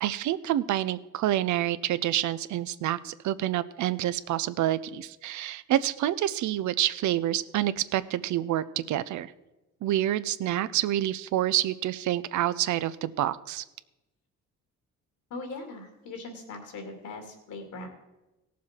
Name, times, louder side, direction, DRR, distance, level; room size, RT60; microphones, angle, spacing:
voice 1, 0.0-9.3 9.8-13.6, right 13 dB, 75° right, 16 dB, 0.6 m, -28 dB
voice 2, 15.3-17.9, left 3 dB, 75° left, 4 dB, 2.6 m, -40 dB
17.0 x 7.2 x 4.4 m, 1.0 s
cardioid pair, 90°, 30 cm